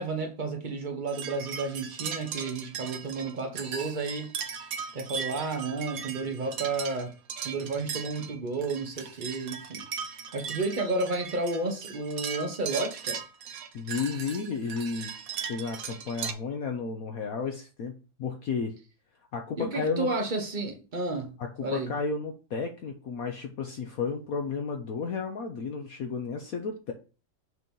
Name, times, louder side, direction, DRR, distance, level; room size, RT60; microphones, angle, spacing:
voice 1, 0.0-4.3 4.9-7.1 7.4-9.9 10.3-13.2 19.6-21.4 21.6-21.9, right 3 dB, 35° right, 0.8 m, -32 dB
sound 1, 1.1-16.3, right 7 dB, 60° right, 1.0 m, -38 dB
voice 2, 13.7-15.1 15.5-18.7 19.3-20.1 21.6-26.9, left 5 dB, 65° left, 1.0 m, -32 dB
6.3 x 2.9 x 5.3 m
omnidirectional pair, 2.0 m